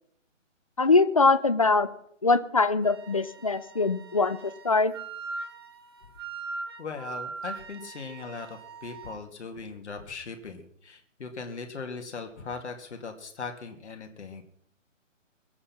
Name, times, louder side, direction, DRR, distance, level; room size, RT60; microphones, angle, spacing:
voice 1, 0.8-1.9 2.2-4.9, left 3 dB, 30° left, 14 dB, 0.5 m, -23 dB
Wind instrument woodwind instrument, 2.8-9.2, right 4 dB, 20° right, 0.7 m, -41 dB
voice 2, 6.8-14.4, left 4 dB, 60° left, 4 dB, 2.3 m, -39 dB
21.5 x 8.6 x 5.9 m, 0.71 s
hypercardioid pair, 160°, 39 cm